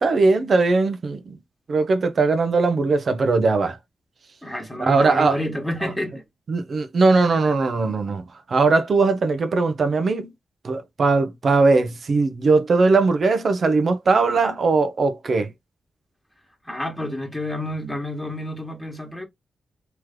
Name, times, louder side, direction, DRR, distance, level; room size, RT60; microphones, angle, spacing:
voice 1, 0.0-1.4 1.7-3.8 4.8-5.4 6.5-8.2 8.5-10.3 10.6-15.5, right 3 dB, 50° right, 0.8 m, -19 dB
voice 2, 4.4-6.2 16.6-19.2, left 1 dB, ahead, 1.6 m, -29 dB
3.3 x 3.1 x 3.7 m
cardioid pair, 90°, 0 cm